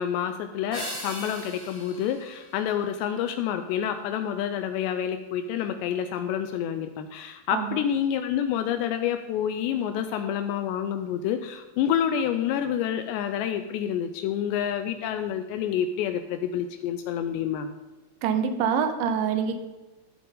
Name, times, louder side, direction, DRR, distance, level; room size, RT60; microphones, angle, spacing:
voice 1, 0.0-17.7, left 9 dB, 80° left, 8 dB, 2.6 m, -28 dB
sound 1, 0.7-3.3, equal, 5° left, 1.8 m, -39 dB
voice 2, 18.2-19.6, right 7 dB, 80° right, 8 dB, 3.2 m, -25 dB
14.5 x 7.7 x 3.8 m, 1.1 s
omnidirectional pair, 5.4 m